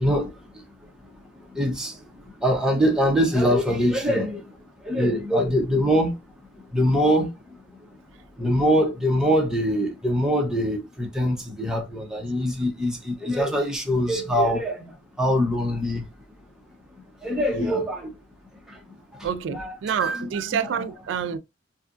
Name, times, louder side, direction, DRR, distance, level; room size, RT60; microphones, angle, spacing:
voice 1, 1.6-1.9 2.4-4.4 4.9-6.1 6.7-7.3 8.4-12.9 13.2-14.8 15.2-16.0 17.2-18.1 19.5-20.3 20.6-20.7, equal, 5° right, 0.6 m, -23 dB
voice 2, 19.2-21.4, right 7 dB, 85° right, 0.3 m, -28 dB
2.7 x 2.4 x 2.4 m
head